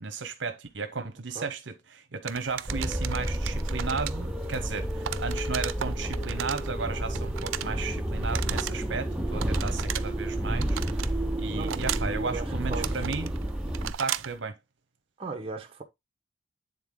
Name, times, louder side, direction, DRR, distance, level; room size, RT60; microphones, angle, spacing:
voice 1, 0.0-11.1 11.4-13.3 14.0-14.5, right 4 dB, 65° right, 0.9 m, -34 dB
sound 1, 2.3-14.4, right 11 dB, 90° right, 0.4 m, -38 dB
sound 2, 2.7-13.9, right 1 dB, 5° right, 0.7 m, -31 dB
voice 2, 11.5-13.0 15.2-15.8, right 4 dB, 30° right, 1.1 m, -38 dB
9.3 x 3.7 x 3.7 m
head